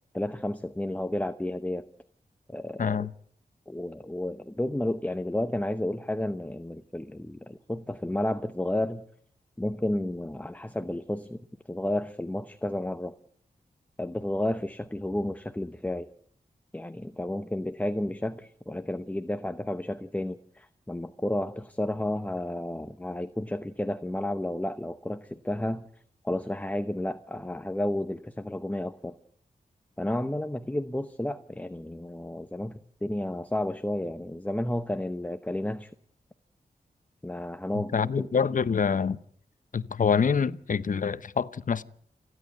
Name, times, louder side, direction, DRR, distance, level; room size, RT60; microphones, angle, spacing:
voice 1, 0.1-1.8 2.5-3.1 3.7-9.0 9.6-13.1 14.0-16.1 16.7-25.9 26.2-29.1 30.0-35.9 37.2-38.3, left 1 dB, 10° left, 0.8 m, -32 dB
voice 2, 2.8-3.1 37.7-39.2 39.7-41.8, left 6 dB, 55° left, 0.8 m, -26 dB
29.0 x 11.0 x 9.2 m
wide cardioid pair, 105°, 16 cm